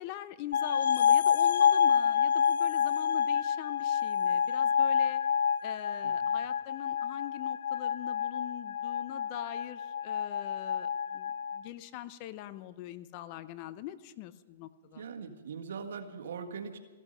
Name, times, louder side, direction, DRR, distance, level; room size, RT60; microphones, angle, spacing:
voice 1, 0.0-5.2 5.6-15.0, left 14 dB, 40° left, 14 dB, 0.7 m, -43 dB
sound 1, 0.5-11.6, left 8 dB, 80° left, 0.4 m, -28 dB
voice 2, 14.9-16.8, right 6 dB, 75° right, 5 dB, 1.7 m, -41 dB
15.0 x 12.5 x 6.6 m, 1.3 s
hypercardioid pair, 140°, 0 cm